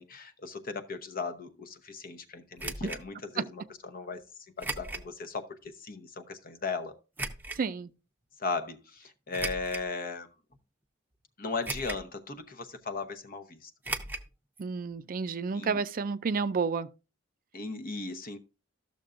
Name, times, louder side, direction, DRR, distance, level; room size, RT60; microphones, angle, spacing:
voice 1, 0.0-4.2 4.6-6.9 8.4-10.3 11.4-13.7 15.5-15.8 17.5-18.4, left 4 dB, 45° left, 0.9 m, -37 dB
sound 1, 2.6-3.0 4.6-5.1 5.6-5.7 7.2-7.6 9.3-9.9 10.5-10.6 11.6-12.1 12.4-12.5 13.8-14.3 14.6-14.7 14.9-15.0, right 2 dB, 10° right, 0.7 m, -36 dB
voice 2, 7.6-7.9 14.6-16.9, right 5 dB, 45° right, 0.4 m, -30 dB
13.0 x 6.7 x 2.5 m
head